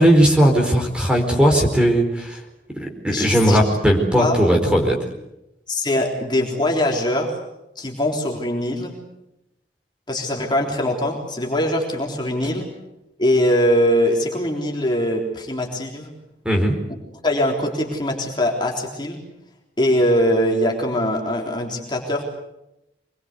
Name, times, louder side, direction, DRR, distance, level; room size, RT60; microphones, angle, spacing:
voice 1, 0.0-2.4 2.8-5.0 16.4-16.8, equal, 5° right, 3 dB, 4.4 m, -17 dB
voice 2, 3.1-3.6 4.2-4.4 5.7-7.4 7.8-8.9 10.1-12.7 13.2-16.1 17.2-19.2 19.8-22.2, left 1 dB, 25° left, 0 dB, 3.7 m, -22 dB
25.5 x 22.0 x 8.2 m, 0.87 s
head